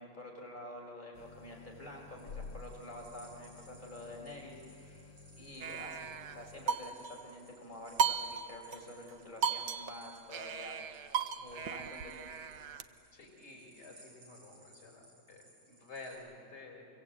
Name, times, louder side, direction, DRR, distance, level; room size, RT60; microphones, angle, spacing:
voice 1, 0.0-10.8 11.4-12.3, left 1 dB, 20° left, -1 dB, 4.7 m, -48 dB
sound 1, 1.1-6.7, left 5 dB, 85° left, 2.2 m, -52 dB
sound 2, 2.1-16.1, right 1 dB, 90° right, 7.1 m, -62 dB
sound 3, 5.6-7.3 8.0-8.8 9.1-9.2 9.4-12.8, right 7 dB, 60° right, 1.3 m, -36 dB
voice 2, 13.1-16.9, left 3 dB, 45° left, 1 dB, 4.8 m, -51 dB
26.0 x 23.0 x 8.5 m, 2.7 s
omnidirectional pair, 2.4 m